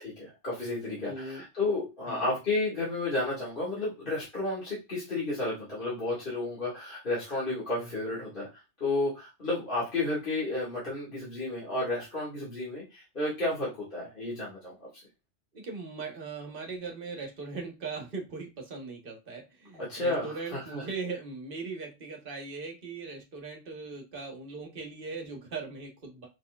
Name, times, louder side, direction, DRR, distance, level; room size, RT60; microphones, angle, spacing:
voice 1, 0.0-14.7 19.8-20.8, left 2 dB, 45° left, -7 dB, 2.0 m, -32 dB
voice 2, 1.0-1.4 2.0-2.3 15.5-26.3, right 4 dB, 50° right, 2 dB, 1.2 m, -39 dB
5.2 x 4.2 x 2.3 m, 0.26 s
omnidirectional pair, 1.2 m